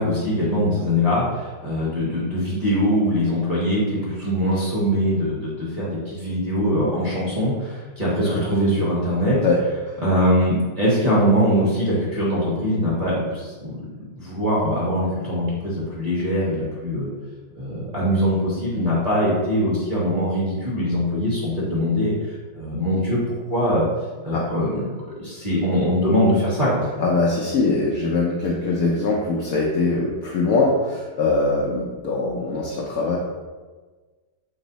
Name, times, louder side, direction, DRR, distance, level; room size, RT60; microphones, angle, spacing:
voice 1, 0.0-9.4 10.0-13.8 14.1-17.1 17.5-22.1 22.5-23.2 23.5-23.8 24.2-26.8, equal, 25° right, -9 dB, 0.9 m, -22 dB
voice 2, 27.0-33.2, left 3 dB, 70° left, -3 dB, 0.8 m, -22 dB
5.3 x 2.0 x 3.9 m, 1.3 s
omnidirectional pair, 2.0 m